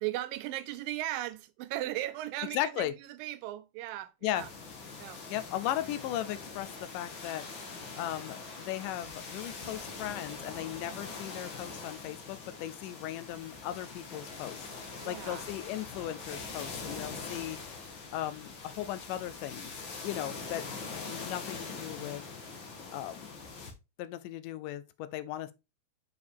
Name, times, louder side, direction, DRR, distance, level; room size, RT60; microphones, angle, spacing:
voice 1, 0.0-4.5 5.0-5.2 15.0-15.5, right 15 dB, 90° right, 2.4 m, -37 dB
voice 2, 2.5-2.9 4.2-4.4 5.3-20.7 20.9-22.2 22.9-23.3 24.0-25.5, left 13 dB, 80° left, 2.1 m, -37 dB
sound 1, 4.3-23.7, left 4 dB, 50° left, 1.6 m, -43 dB
6.6 x 4.9 x 3.5 m
omnidirectional pair, 3.9 m